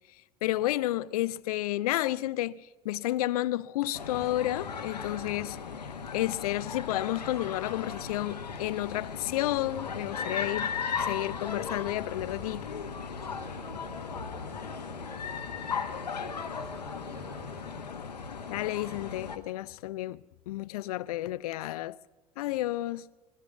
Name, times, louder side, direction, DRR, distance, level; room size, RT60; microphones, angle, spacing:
voice 1, 0.4-2.6 2.8-5.6 6.1-10.7 11.0-12.7 18.5-20.2 20.5-22.0 22.4-23.1, left 15 dB, 65° left, 0.5 m, -31 dB
sound 1, 3.9-19.4, left 6 dB, 80° left, 1.0 m, -37 dB
Squeak, 7.1-16.4, equal, 90° right, 3.5 m, -54 dB
voice 2, 13.2-18.1, right 1 dB, 15° right, 5.3 m, -51 dB
20.0 x 12.5 x 5.9 m
figure-of-eight pair, 70°, 21 cm